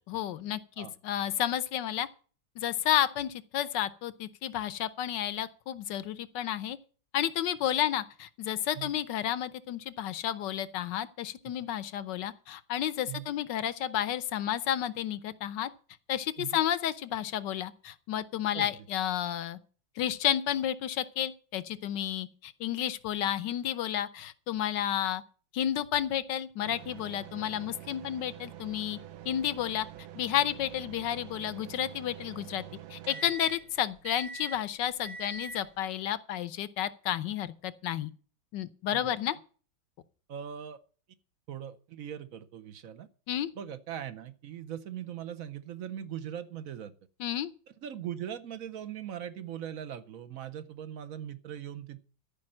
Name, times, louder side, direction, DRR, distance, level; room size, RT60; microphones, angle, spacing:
voice 1, 0.0-2.1 2.6-6.8 7.1-15.7 16.1-19.6 20.0-25.2 25.5-29.0 29.2-29.9 30.2-32.6 32.9-38.1 38.5-39.4 43.3-43.5 47.2-47.5, left 11 dB, 70° left, 1.3 m, -31 dB
sound 1, 26.6-35.8, right 7 dB, 80° right, 1.6 m, -45 dB
voice 2, 40.3-40.8 41.5-43.1 43.6-46.9 47.8-52.0, right 9 dB, 55° right, 1.0 m, -40 dB
14.0 x 5.3 x 8.8 m
omnidirectional pair, 2.1 m